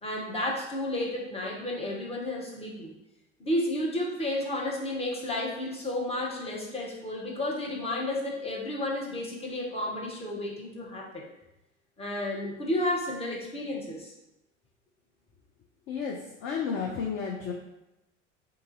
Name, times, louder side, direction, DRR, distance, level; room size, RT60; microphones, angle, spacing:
voice 1, 0.0-2.9 3.4-11.3 12.0-14.1, left 1 dB, 15° left, -2 dB, 0.9 m, -32 dB
voice 2, 15.9-17.5, left 6 dB, 35° left, 0 dB, 0.5 m, -32 dB
2.7 x 2.6 x 3.8 m, 0.94 s
figure-of-eight pair, 70°, 36 cm